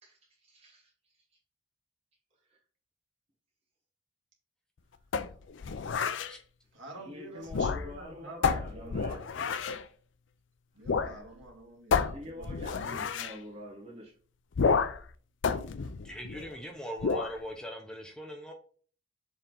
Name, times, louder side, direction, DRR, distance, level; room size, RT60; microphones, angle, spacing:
voice 1, 0.0-1.2 2.4-2.6 7.0-9.3 12.0-14.1, equal, 35° right, 1.2 m, -46 dB
sound 1, 5.1-6.3 7.4-8.1 8.4-9.8 10.9-11.2 11.4-11.5 11.9-13.4 14.5-15.1 15.4-16.6 17.0-17.4, left 5 dB, 80° left, 0.5 m, -30 dB
voice 2, 6.7-9.2 10.7-12.8, right 2 dB, 80° right, 2.2 m, -48 dB
voice 3, 16.0-18.5, equal, 5° left, 0.8 m, -40 dB
7.0 x 3.6 x 3.8 m
head